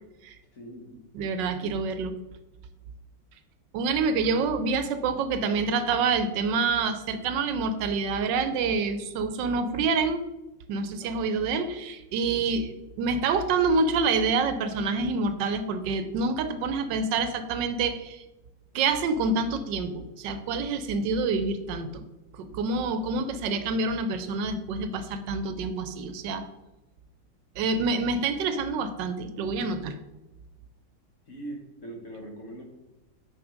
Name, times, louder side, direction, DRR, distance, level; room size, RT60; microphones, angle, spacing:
voice 1, 0.5-0.9 4.0-4.2 11.0-11.2 31.3-32.6, right 1 dB, 45° left, 2 dB, 1.3 m, -41 dB
voice 2, 1.1-2.1 3.7-10.2 10.7-18.2 18.7-22.0 22.3-26.4 27.6-30.0, right 4 dB, 80° right, 10 dB, 1.2 m, -27 dB
6.0 x 4.8 x 5.1 m, 1.0 s
omnidirectional pair, 2.0 m